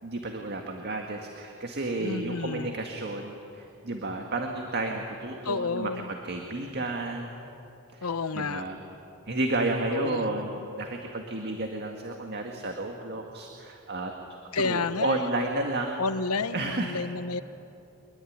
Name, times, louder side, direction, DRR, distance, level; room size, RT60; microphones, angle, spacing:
voice 1, 0.0-7.3 7.9-8.8 9.3-14.1 14.5-16.0 16.5-17.0, right 2 dB, 50° right, 3 dB, 1.9 m, -32 dB
voice 2, 2.0-2.7 5.4-6.0 8.0-8.6 9.9-10.2 14.5-15.1 16.0-17.4, left 4 dB, 85° left, 14 dB, 0.9 m, -30 dB
24.0 x 22.0 x 9.5 m, 2.9 s
head